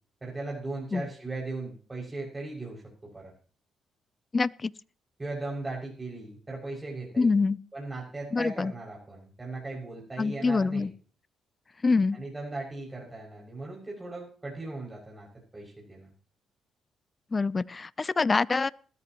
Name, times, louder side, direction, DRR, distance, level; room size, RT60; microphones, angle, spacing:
voice 1, 0.2-3.3 5.2-7.3 7.7-10.9 12.1-16.1, right 2 dB, 20° right, 6.7 m, -38 dB
voice 2, 4.3-4.7 7.2-7.6 8.3-8.7 10.2-10.9 11.8-12.2 17.3-18.7, left 4 dB, 35° left, 0.6 m, -25 dB
20.5 x 13.5 x 3.1 m
supercardioid pair, 65°, 0 cm